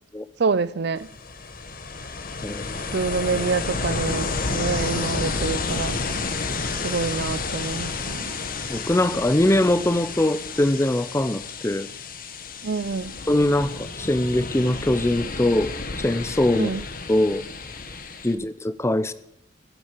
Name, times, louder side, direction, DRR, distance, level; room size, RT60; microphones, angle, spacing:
voice 1, 0.4-1.1 2.9-6.0 6.8-8.3 12.6-13.2 16.6-16.8 18.3-18.4, right 4 dB, 55° right, 0.5 m, -26 dB
Ocean, 1.0-18.3, left 4 dB, 45° left, 1.2 m, -31 dB
voice 2, 2.4-2.9 8.7-11.9 13.3-16.7 17.1-17.4 18.2-19.1, left 1 dB, 15° left, 0.6 m, -22 dB
14.5 x 7.8 x 8.3 m
head